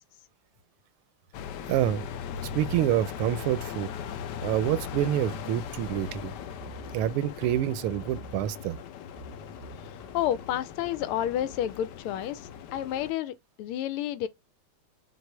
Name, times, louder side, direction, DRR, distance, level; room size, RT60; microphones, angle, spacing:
sound 1, 1.3-13.1, left 8 dB, 70° left, 1.0 m, -39 dB
voice 1, 1.7-2.1 2.5-3.9 4.4-6.3 6.9-8.8, right 11 dB, 85° right, 1.5 m, -27 dB
sound 2, 2.3-3.6 4.0-5.4 5.7-7.1 7.4-8.8 9.1-10.5 10.8-12.2 12.5-13.0, right 1 dB, 25° left, 1.0 m, -48 dB
voice 2, 10.1-12.4 12.7-14.3, left 11 dB, 90° left, 1.5 m, -30 dB
6.1 x 2.5 x 3.3 m
omnidirectional pair, 2.3 m